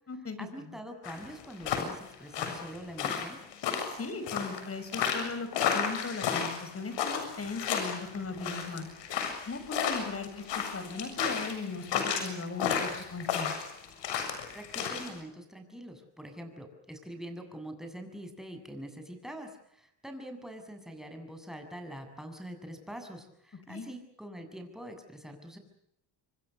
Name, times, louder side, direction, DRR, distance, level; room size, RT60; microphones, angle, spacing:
voice 1, 0.4-3.4 14.5-25.6, equal, ahead, 5 dB, 7.4 m, -44 dB
sound 1, 1.0-15.1, left 7 dB, 70° left, 7.3 m, -32 dB
voice 2, 4.0-5.5 5.7-8.9 9.5-13.5 23.7-23.8, left 3 dB, 30° left, 11 dB, 6.1 m, -38 dB
27.5 x 24.5 x 6.7 m, 0.71 s
cardioid pair, 100°, 44 cm